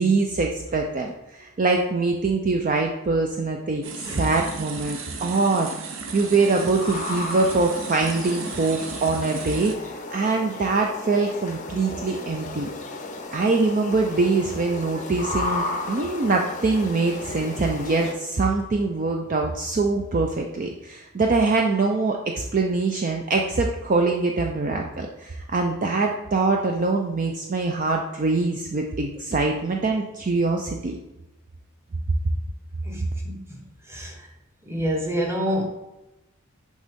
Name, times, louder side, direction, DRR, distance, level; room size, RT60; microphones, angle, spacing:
voice 1, 0.0-3.8 4.2-5.7 6.1-12.7 13.3-31.0, right 3 dB, 35° right, 2 dB, 0.4 m, -23 dB
voice 2, 3.8-4.3 32.8-33.6 33.9-34.3 34.6-35.7, equal, 10° right, 1 dB, 1.0 m, -28 dB
sound 1, 3.8-9.7, right 4 dB, 60° right, 0.8 m, -35 dB
sound 2, 6.3-18.1, left 2 dB, 35° left, 0.6 m, -34 dB
6.3 x 5.3 x 3.6 m, 0.98 s
head